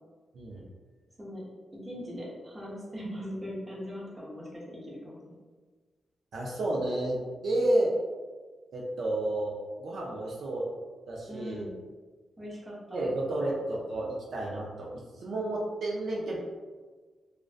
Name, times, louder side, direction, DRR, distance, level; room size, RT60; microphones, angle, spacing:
voice 1, 1.7-5.4 11.3-11.8 12.4-13.5, equal, 20° right, -5 dB, 0.7 m, -40 dB
voice 2, 6.3-7.9 8.7-10.7 11.1-11.7 12.9-16.4, right 1 dB, 70° right, -3 dB, 0.4 m, -31 dB
2.4 x 2.1 x 2.4 m, 1.4 s
cardioid pair, 105°, 0 cm